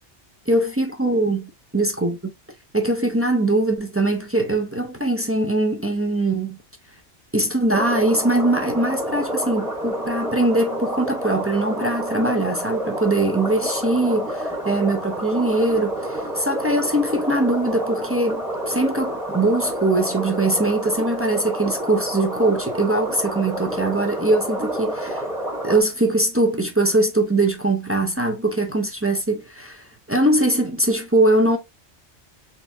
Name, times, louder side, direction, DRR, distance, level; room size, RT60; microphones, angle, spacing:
voice 1, 0.5-2.2 2.7-6.6 7.3-25.2 25.6-31.6, right 2 dB, 20° right, 0.4 m, -22 dB
sound 1, 7.7-25.8, right 1 dB, 5° right, 0.9 m, -29 dB
4.1 x 3.4 x 2.7 m
omnidirectional pair, 1.2 m